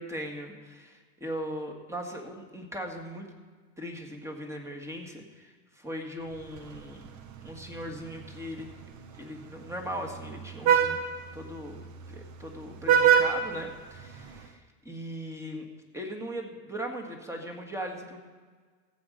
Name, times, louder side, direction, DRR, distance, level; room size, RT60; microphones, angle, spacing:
voice 1, 0.0-3.3 3.8-7.1 7.4-8.7 9.2-11.0 11.3-11.8 12.1-15.7 15.9-18.2, equal, 5° right, 3 dB, 1.8 m, -39 dB
Vehicle horn car horn honking, 6.3-14.5, right 8 dB, 40° right, 1.0 m, -29 dB
15.5 x 8.2 x 5.1 m, 1.5 s
supercardioid pair, 120°, 46 cm